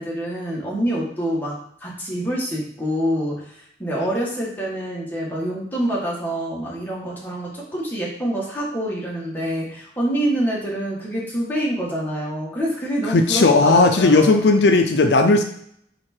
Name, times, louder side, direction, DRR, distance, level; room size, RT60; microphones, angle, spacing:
voice 1, 0.0-14.4, right 1 dB, 10° left, -4 dB, 1.8 m, -26 dB
voice 2, 13.0-15.4, left 3 dB, 80° left, 6 dB, 0.6 m, -15 dB
4.8 x 4.7 x 4.5 m, 0.68 s
head